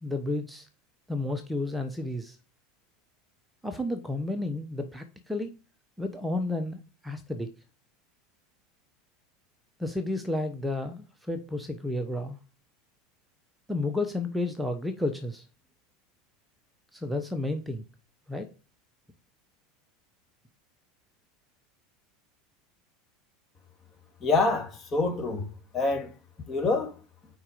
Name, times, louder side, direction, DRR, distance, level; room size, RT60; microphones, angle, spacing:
voice 1, 0.0-0.7 1.1-2.4 3.6-5.5 6.0-7.5 9.8-12.4 13.7-15.4 16.9-17.8 18.3-18.5, left 2 dB, 5° right, 1.0 m, -31 dB
voice 2, 24.2-25.5 25.7-26.1 26.5-26.9, left 3 dB, 30° left, 2.3 m, -26 dB
7.2 x 5.0 x 4.9 m
hypercardioid pair, 80°, 0 cm